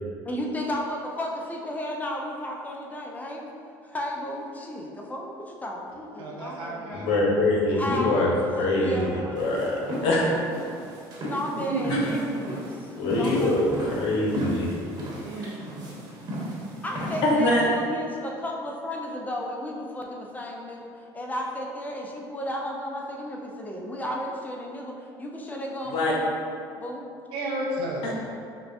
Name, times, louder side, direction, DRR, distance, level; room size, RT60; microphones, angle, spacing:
voice 1, 0.2-3.5 3.8-7.1 7.7-8.4 8.8-9.1 11.2-13.8 16.8-26.3 26.7-27.1, left 1 dB, 20° left, 0 dB, 0.6 m, -33 dB
voice 2, 6.2-7.2 7.7-8.1 8.9-9.5 9.8-10.0 11.5-12.2 14.8-15.6 27.3-28.1, right 2 dB, 70° right, -2 dB, 0.7 m, -33 dB
voice 3, 6.9-8.3 8.6-9.8 10.0-10.2 11.9-12.0 13.0-14.7 15.4-15.5 17.2-17.6 25.8-26.1, left 2 dB, 70° left, -2 dB, 0.9 m, -24 dB
sound 1, 9.3-17.8, equal, 50° right, 1.1 m, -36 dB
5.9 x 2.3 x 2.6 m, 2.4 s
supercardioid pair, 90°, 9 cm